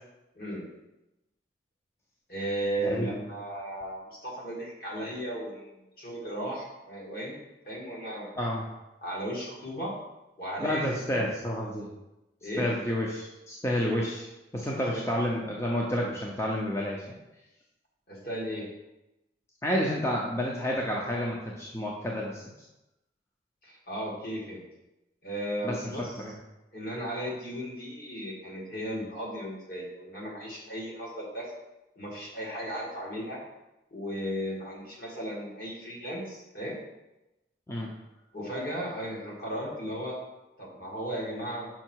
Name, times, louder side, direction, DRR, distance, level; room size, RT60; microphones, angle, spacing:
voice 1, 0.4-0.7 2.3-5.7 6.0-7.4 7.7-8.3 9.0-9.9 10.4-11.3 12.4-12.7 14.9-15.0 18.1-18.7 23.6-24.6 25.2-26.1 26.7-31.5 32.0-33.4 33.9-36.8 38.3-40.2 40.6-41.7, equal, 55° left, -3 dB, 1.9 m, -35 dB
voice 2, 2.8-3.2 8.4-8.7 10.6-11.9 12.6-17.0 19.6-22.4 25.6-25.8 26.2-26.3 37.7-37.9, equal, 15° left, -2 dB, 0.6 m, -30 dB
5.8 x 5.5 x 4.5 m, 0.97 s
head